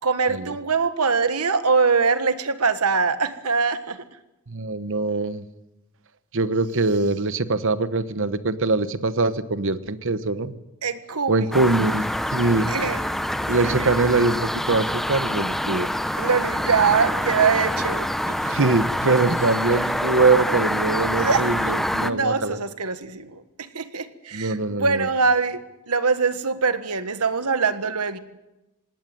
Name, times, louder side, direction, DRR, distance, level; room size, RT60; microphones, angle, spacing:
voice 1, 0.0-4.0 10.8-11.6 12.7-13.0 13.6-14.1 16.1-18.5 21.2-21.5 22.0-25.6 25.9-28.2, right 5 dB, 90° right, 11 dB, 1.5 m, -23 dB
voice 2, 4.5-5.4 6.3-10.5 11.3-12.0 12.3-12.7 13.5-15.9 18.5-22.6 24.3-25.0, right 3 dB, 60° right, 14 dB, 1.1 m, -23 dB
sound 1, 11.5-22.1, equal, ahead, 0.7 m, -26 dB
18.5 x 18.5 x 9.2 m, 0.98 s
head